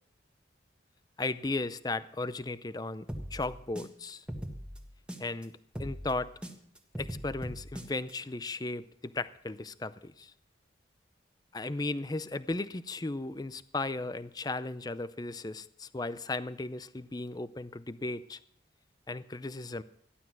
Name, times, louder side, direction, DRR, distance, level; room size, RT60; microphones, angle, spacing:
voice 1, 1.2-3.1 3.3-4.2 5.2-5.5 5.8-6.3 7.0-10.3 11.5-18.4 19.1-19.8, left 2 dB, 20° left, 14 dB, 0.5 m, -36 dB
sound 1, 3.1-5.4 5.7-8.1, equal, 5° right, 1.6 m, -40 dB
15.0 x 11.5 x 6.1 m, 0.68 s
head